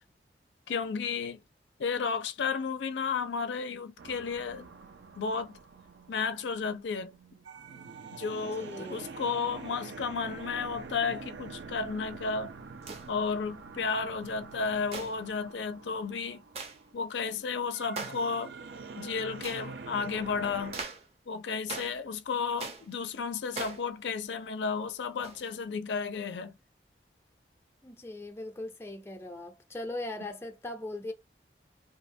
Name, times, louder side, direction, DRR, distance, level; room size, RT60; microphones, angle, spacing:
voice 1, 0.7-1.4 1.8-4.7 5.2-5.6 6.1-7.1 8.1-12.5 13.1-16.4 16.9-18.5 19.0-20.8 21.3-26.5, left 5 dB, 85° left, 0.4 m, -33 dB
sound 1, 4.0-20.9, right 4 dB, 85° right, 0.5 m, -46 dB
voice 2, 8.4-9.0 27.8-31.1, left 2 dB, 15° left, 0.5 m, -39 dB
sound 2, 12.8-13.1 14.9-15.2 16.5-16.8 18.0-18.3 19.4-19.7 20.7-21.1 21.7-22.0 22.6-22.9 23.5-23.9 25.2-25.5, right 4 dB, 35° right, 0.5 m, -40 dB
2.7 x 2.1 x 2.5 m
head